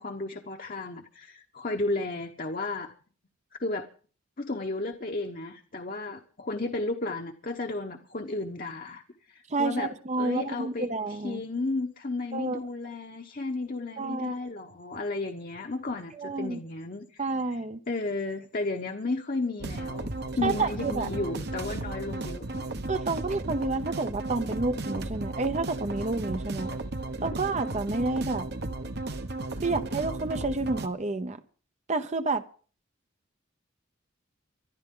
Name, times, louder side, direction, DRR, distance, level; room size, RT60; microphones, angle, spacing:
voice 1, 0.0-2.9 3.6-3.9 4.4-17.2 17.9-22.4, left 2 dB, 45° left, 4 dB, 1.1 m, -33 dB
voice 2, 9.5-11.4 12.3-12.6 14.0-14.4 16.2-16.6 17.2-17.8 20.4-21.1 22.9-26.7 27.2-28.5 29.6-31.4 31.9-32.4, right 3 dB, 35° right, 10 dB, 0.7 m, -29 dB
sound 1, 19.6-30.9, right 2 dB, 55° right, 1.1 m, -34 dB
24.5 x 11.5 x 3.8 m, 0.41 s
head